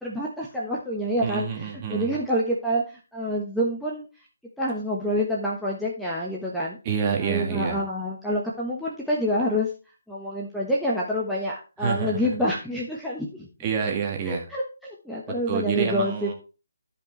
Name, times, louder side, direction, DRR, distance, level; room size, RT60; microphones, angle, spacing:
voice 1, 0.0-4.1 4.6-6.8 7.2-9.7 10.1-13.5 14.2-16.3, equal, ahead, -5 dB, 1.2 m, -27 dB
voice 2, 1.2-2.1 6.9-7.8 11.8-12.3 13.6-14.5 15.5-16.3, right 6 dB, 25° right, 1 dB, 1.9 m, -28 dB
12.5 x 5.4 x 3.2 m, 0.33 s
figure-of-eight pair, 145°, 0 cm